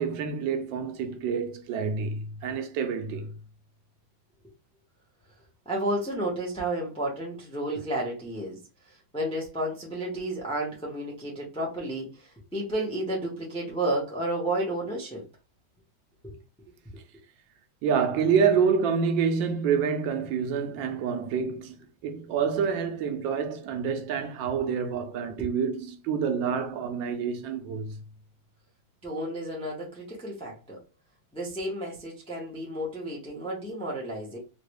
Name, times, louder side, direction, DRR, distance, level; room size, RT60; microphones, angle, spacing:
voice 1, 0.0-3.3 17.8-21.7 22.0-28.0, right 6 dB, 75° right, 1.2 m, -27 dB
voice 2, 5.7-8.6 9.1-15.2 16.2-16.3 25.4-25.5 29.0-30.8 31.3-34.4, right 1 dB, 10° left, 0.3 m, -32 dB
3.7 x 2.2 x 3.1 m
omnidirectional pair, 2.2 m